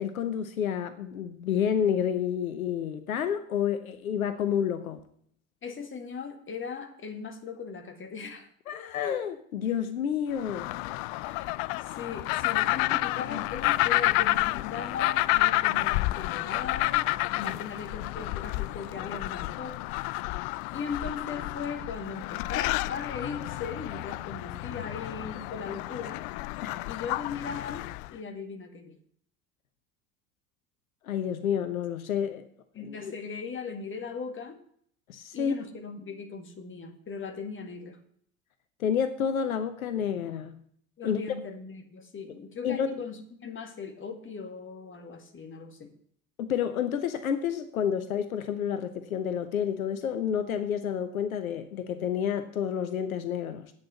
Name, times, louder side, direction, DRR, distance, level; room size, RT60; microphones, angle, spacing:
voice 1, 0.0-5.0 8.7-10.7 26.6-26.9 31.0-32.4 32.9-33.1 35.1-35.6 38.8-40.6 41.0-41.3 42.6-42.9 46.4-53.7, left 8 dB, 80° left, 10 dB, 0.8 m, -29 dB
voice 2, 5.6-8.5 11.3-11.5 11.8-17.1 17.3-19.8 20.7-26.3 26.8-29.0 32.7-34.6 35.3-38.0 41.0-45.9, left 5 dB, 30° left, 6 dB, 2.0 m, -38 dB
sound 1, 10.4-28.1, left 19 dB, 55° left, 0.4 m, -30 dB
8.8 x 6.9 x 8.1 m, 0.63 s
figure-of-eight pair, 65°, 41 cm